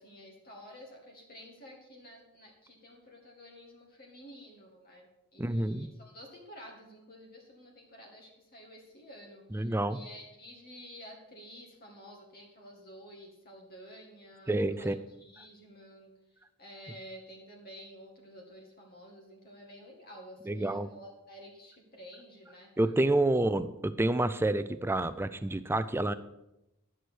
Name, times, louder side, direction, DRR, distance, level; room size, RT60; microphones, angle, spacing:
voice 1, 0.0-22.7, equal, 45° left, -1 dB, 2.0 m, -51 dB
voice 2, 5.4-5.9 9.5-10.0 14.5-15.0 20.5-20.9 22.8-26.1, right 2 dB, 10° right, 13 dB, 0.4 m, -28 dB
11.0 x 6.3 x 6.3 m, 0.90 s
head